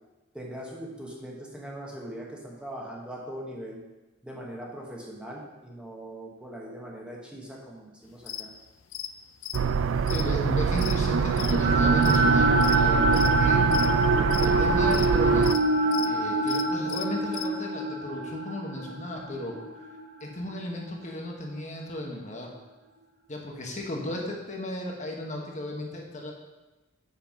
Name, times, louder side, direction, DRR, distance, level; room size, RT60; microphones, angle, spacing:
voice 1, 0.3-3.8 4.2-8.5, right 1 dB, 5° right, -2 dB, 1.1 m, -40 dB
sound 1, 8.2-8.4 8.9-9.1 9.4-11.5 11.9-12.8 13.1-13.3 13.7-14.5 14.9-15.1 15.4-16.1 16.4-17.5, left 12 dB, 80° left, 0.5 m, -36 dB
sound 2, 9.5-15.6, right 5 dB, 70° right, 0.4 m, -24 dB
voice 2, 10.1-13.6 14.4-15.6 16.0-19.5 20.2-22.5 23.3-26.3, left 1 dB, 40° left, 0 dB, 1.2 m, -35 dB
sound 3, 11.1-21.3, right 2 dB, 55° right, 1.0 m, -26 dB
6.8 x 5.8 x 5.2 m, 1.1 s
head